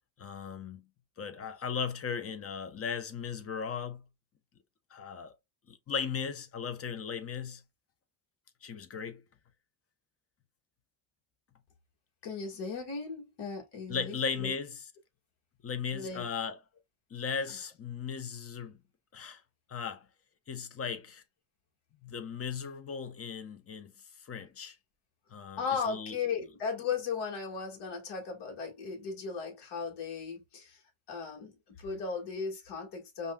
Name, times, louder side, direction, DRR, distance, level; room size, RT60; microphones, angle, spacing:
voice 1, 0.2-0.9 1.2-4.1 4.9-5.4 5.7-7.6 8.6-9.2 13.9-14.9 15.6-16.6 17.1-18.8 19.1-19.4 19.7-20.1 20.5-21.2 22.0-23.9 24.2-24.8 25.3-26.2, left 6 dB, 30° left, 0.8 m, -37 dB
voice 2, 12.2-14.5 15.9-16.3 25.6-30.8 31.1-31.5 31.8-33.3, left 5 dB, 60° left, 1.9 m, -36 dB
5.3 x 2.7 x 2.3 m
cardioid pair, 135°, 46 cm